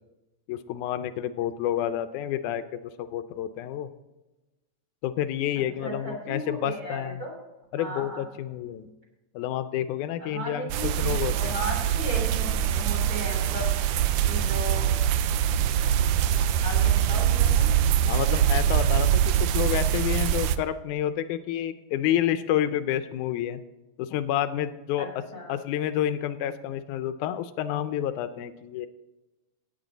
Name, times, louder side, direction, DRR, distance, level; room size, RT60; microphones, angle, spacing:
voice 1, 0.5-3.9 5.0-7.2 7.7-8.9 9.4-11.6 18.1-23.6 24.0-25.1 25.5-28.9, left 11 dB, 85° left, 11 dB, 2.0 m, -29 dB
voice 2, 5.5-7.3 7.8-8.3 10.2-13.7 14.3-15.0 16.6-17.7 25.0-25.6, right 1 dB, 30° right, -2 dB, 3.4 m, -36 dB
sound 1, 10.7-20.6, right 10 dB, 80° right, 1.6 m, -23 dB
17.0 x 8.3 x 4.0 m, 1.1 s
omnidirectional pair, 3.5 m